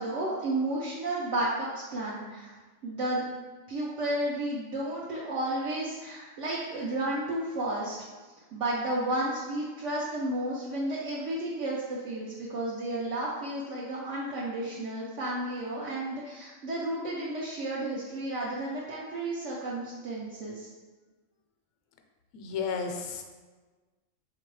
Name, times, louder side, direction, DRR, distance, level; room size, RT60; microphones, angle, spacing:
voice 1, 0.0-2.5 2.8-3.3 3.7-8.0 8.5-20.7, right 1 dB, 70° right, -6 dB, 1.0 m, -32 dB
voice 2, 22.3-23.2, left 5 dB, 75° left, 4 dB, 0.9 m, -32 dB
3.7 x 2.8 x 4.6 m, 1.3 s
omnidirectional pair, 1.4 m